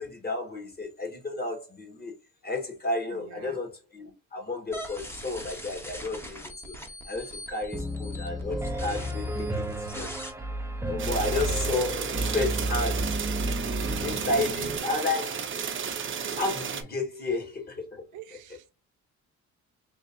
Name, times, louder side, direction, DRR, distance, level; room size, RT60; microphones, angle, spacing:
voice 1, 0.0-2.1 2.4-6.7 7.1-10.1 10.9-13.2 14.0-15.5 16.4-18.0, left 2 dB, 30° left, 1.8 m, -32 dB
voice 2, 3.1-3.6 14.4-14.5 18.1-18.7, right 10 dB, 85° right, 0.6 m, -45 dB
sound 1, 4.7-10.3, equal, 10° left, 1.0 m, -42 dB
Piano, 7.7-14.8, right 1 dB, 10° right, 0.6 m, -31 dB
sound 2, 11.0-16.8, right 7 dB, 40° right, 0.8 m, -33 dB
3.7 x 3.2 x 2.8 m
cardioid pair, 90°, 30 cm